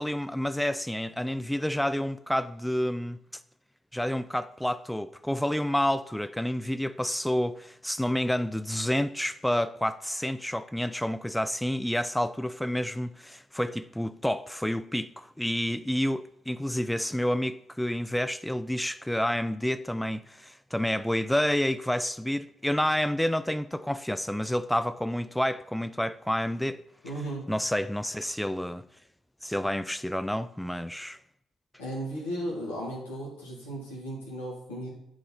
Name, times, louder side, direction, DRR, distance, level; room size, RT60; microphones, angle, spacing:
voice 1, 0.0-3.2 3.9-26.8 27.5-28.8 29.4-31.2, left 1 dB, 5° left, 0.3 m, -29 dB
voice 2, 27.0-27.4 31.8-34.9, right 1 dB, 80° left, 2.0 m, -35 dB
9.6 x 3.8 x 4.1 m
hypercardioid pair, 45°, 0 cm